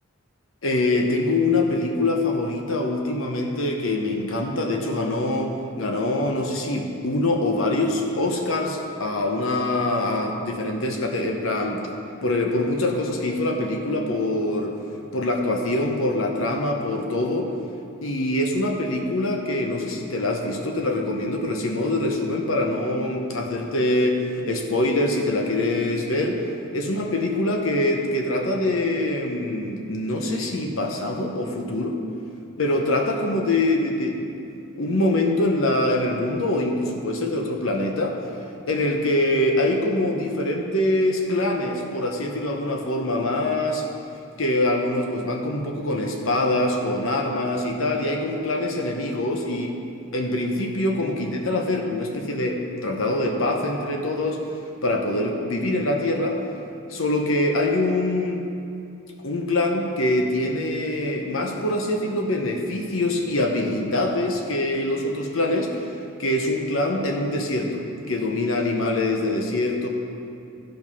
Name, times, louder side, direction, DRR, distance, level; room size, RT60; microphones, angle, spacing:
voice 1, 0.6-11.8 12.2-14.7 15.1-17.5 18.0-26.4 26.7-32.0 32.6-34.3 34.8-38.2 38.7-43.8 44.4-49.7 50.1-54.4 54.8-56.4 56.9-58.4 59.2-65.9 66.2-69.9, left 1 dB, 70° left, 2 dB, 1.0 m, -24 dB
14.0 x 5.3 x 5.5 m, 2.6 s
head